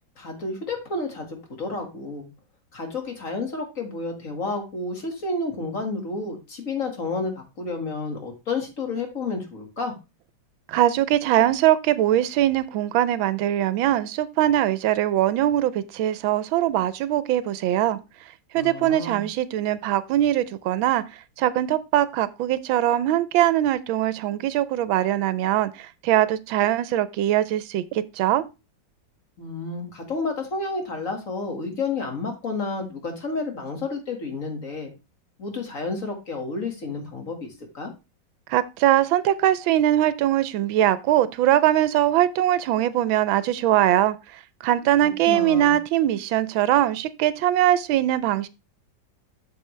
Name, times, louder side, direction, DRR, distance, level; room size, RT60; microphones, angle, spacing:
voice 1, 0.2-2.3 2.7-9.9 18.5-19.2 29.4-34.9 35.4-37.9 45.3-45.7, left 3 dB, 40° left, 2.1 m, -30 dB
voice 2, 10.7-18.0 18.5-21.0 21.4-28.4 38.5-44.2 44.6-48.5, right 12 dB, 80° right, 1.4 m, -21 dB
8.1 x 6.9 x 3.2 m
omnidirectional pair, 2.2 m